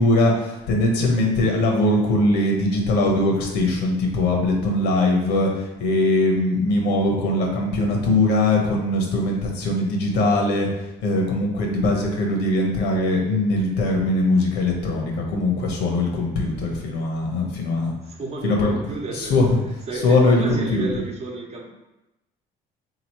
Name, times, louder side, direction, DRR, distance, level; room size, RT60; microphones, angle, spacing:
voice 1, 0.0-10.7 11.0-17.9 18.4-18.8 19.1-19.6 20.0-20.9, left 2 dB, 85° left, 0 dB, 0.9 m, -21 dB
voice 2, 18.1-21.7, right 3 dB, 40° right, -1 dB, 0.9 m, -32 dB
3.8 x 3.0 x 2.9 m, 0.94 s
cardioid pair, 110°, 17 cm